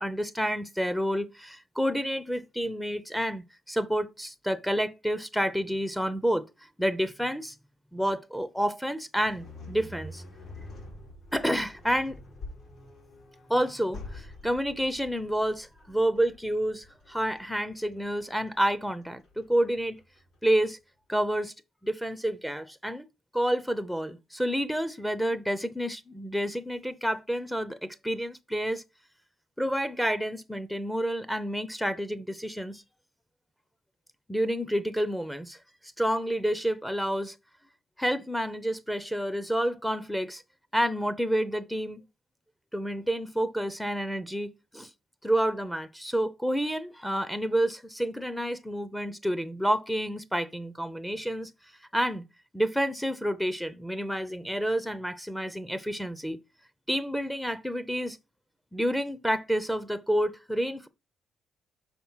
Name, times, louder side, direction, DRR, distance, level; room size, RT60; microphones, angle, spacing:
voice 1, 0.0-6.5 6.8-7.5 7.9-10.2 11.3-12.2 13.5-20.0 20.4-20.8 21.1-21.5 21.8-23.1 23.3-28.8 29.6-32.8 34.3-35.6 36.0-37.4 38.0-40.4 40.7-42.0 42.7-44.9 45.2-51.5 51.9-52.2 52.5-56.4 56.9-58.2 58.7-60.9, equal, 5° left, 0.6 m, -29 dB
sound 1, 9.2-20.3, left 2 dB, 70° left, 4.4 m, -46 dB
5.9 x 4.1 x 5.5 m
cardioid pair, 90°, 0 cm